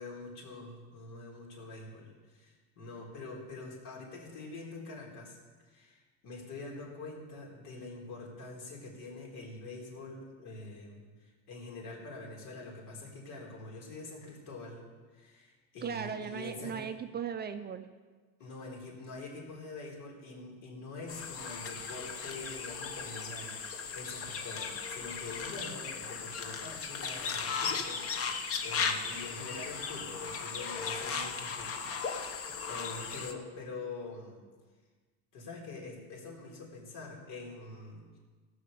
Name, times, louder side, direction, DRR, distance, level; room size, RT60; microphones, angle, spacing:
voice 1, 0.0-5.4 5.6-14.8 15.1-16.8 18.4-32.4 32.7-34.4 35.3-38.2, left 3 dB, 75° left, -2 dB, 4.1 m, -45 dB
voice 2, 15.8-17.9, right 7 dB, 25° right, 8 dB, 0.5 m, -37 dB
sound 1, 21.1-33.3, left 5 dB, 35° left, 1.0 m, -37 dB
16.5 x 6.5 x 6.8 m, 1.4 s
cardioid pair, 140°, 38 cm